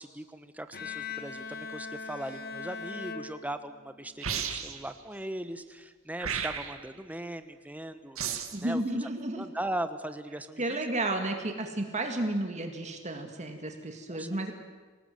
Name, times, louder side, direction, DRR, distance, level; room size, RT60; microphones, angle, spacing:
voice 1, 0.0-9.1 9.4-10.9 14.1-14.5, right 1 dB, 5° right, 10 dB, 1.1 m, -39 dB
Bowed string instrument, 0.7-4.1, left 4 dB, 50° left, 1.4 m, -40 dB
sound 1, 4.2-4.9 6.2-6.9 8.2-8.6, right 7 dB, 75° right, 2.1 m, -33 dB
voice 2, 8.5-9.4 10.6-14.5, right 1 dB, 35° right, 4 dB, 2.1 m, -32 dB
26.0 x 18.5 x 7.8 m, 1.4 s
head